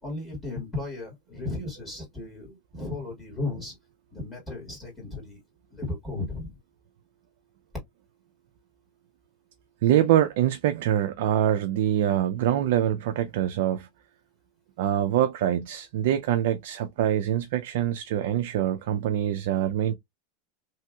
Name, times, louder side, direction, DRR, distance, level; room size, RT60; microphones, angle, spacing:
voice 1, 0.0-3.7 4.1-5.4 5.7-6.5, left 2 dB, 15° left, 1.8 m, -35 dB
voice 2, 9.8-13.9 14.8-19.9, right 11 dB, 70° right, 0.4 m, -24 dB
3.0 x 2.8 x 2.3 m
supercardioid pair, 130°, 0 cm